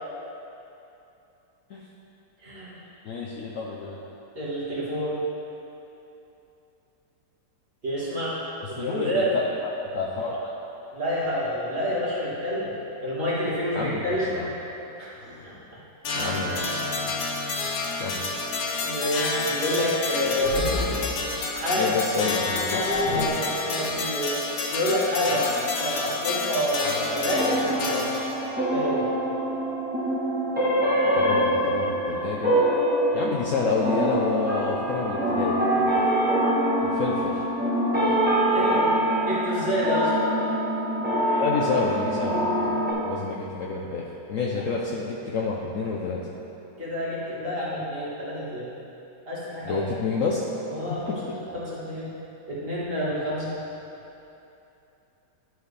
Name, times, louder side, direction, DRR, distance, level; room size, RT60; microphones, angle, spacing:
voice 1, 2.4-2.8 4.3-5.2 7.8-8.4 8.7-9.3 10.9-12.7 13.0-14.3 15.0-15.1 15.4-15.5 16.1-16.3 18.8-20.6 21.5-22.1 23.1-24.4 24.7-25.5 25.8-28.3 28.7-29.1 38.0-38.2 38.5-38.9 39.2-40.1 41.3-41.5 46.8-48.7 49.3-49.8 50.7-51.1 51.5-52.1 52.5-53.5, equal, 30° right, -9 dB, 1.7 m, -28 dB
voice 2, 3.0-4.0 8.8-10.5 13.7-14.5 16.1-17.3 18.0-18.2 21.8-22.8 31.1-32.7 33.1-35.9 36.8-37.4 41.4-46.2 49.6-50.4 51.1-51.2, left 4 dB, 90° left, -3 dB, 0.7 m, -29 dB
sound 1, 15.2-15.4 16.6-16.7 17.1-17.3 17.6-17.8 20.1-21.4 22.4-23.3, left 3 dB, 55° left, 0.8 m, -29 dB
sound 2, 16.0-28.5, left 3 dB, 70° left, 1.2 m, -29 dB
sound 3, 27.3-42.9, right 1 dB, 10° right, 0.7 m, -24 dB
11.0 x 4.7 x 3.3 m, 2.9 s
omnidirectional pair, 2.1 m